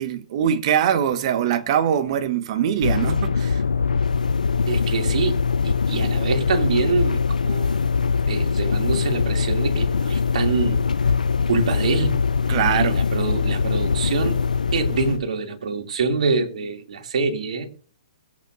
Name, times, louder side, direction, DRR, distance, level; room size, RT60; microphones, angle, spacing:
voice 1, 0.0-3.6 12.5-13.0, right 9 dB, 50° right, 1.4 m, -22 dB
sound 1, 2.8-15.2, left 5 dB, 90° left, 0.6 m, -22 dB
voice 2, 4.7-5.4 5.6-7.8 8.3-10.8 11.5-12.1 12.7-14.4 14.7-17.7, right 4 dB, 65° right, 2.9 m, -25 dB
22.5 x 8.7 x 2.7 m
hypercardioid pair, 130°, 4 cm